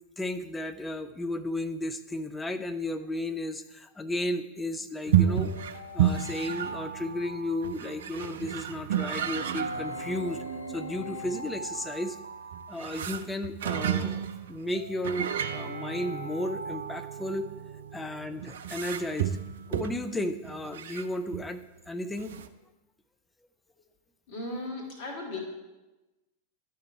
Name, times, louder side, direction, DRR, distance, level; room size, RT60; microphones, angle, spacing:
voice 1, 0.2-5.5 5.9-10.4 10.7-12.2 12.7-17.5 17.9-19.4 19.7-22.4, left 1 dB, 10° left, 8 dB, 0.5 m, -34 dB
sound 1, 5.1-21.5 21.9-22.0 22.2-22.5, right 10 dB, 60° right, 0.4 m, -32 dB
Alarm, 5.2-8.6 9.7-13.6 14.7-18.0, right 1 dB, 80° left, 0.8 m, -43 dB
sound 2, 9.2-11.8, right 3 dB, 90° right, 0.8 m, -42 dB
voice 2, 24.3-25.4, left 2 dB, 50° left, -2 dB, 2.1 m, -36 dB
11.5 x 4.8 x 4.5 m, 1.1 s
figure-of-eight pair, 90°, 0 cm